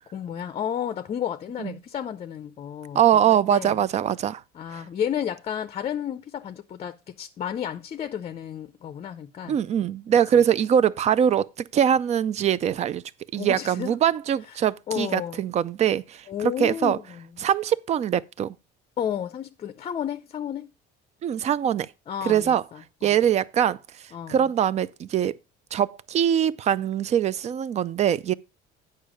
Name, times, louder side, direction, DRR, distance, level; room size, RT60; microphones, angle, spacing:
voice 1, 0.1-3.8 4.5-9.6 10.3-10.4 13.4-13.9 14.5-15.4 16.3-17.5 19.0-20.7 22.1-23.2 24.1-24.5, left 9 dB, 35° left, 0.5 m, -32 dB
voice 2, 2.9-4.4 4.7-4.8 9.5-13.0 13.3-17.0 17.4-18.5 21.2-21.9 22.2-22.6 23.0-23.8 24.3-25.3 25.7-28.3, right 9 dB, 35° right, 0.4 m, -22 dB
8.8 x 5.6 x 5.0 m
cardioid pair, 130°, 19 cm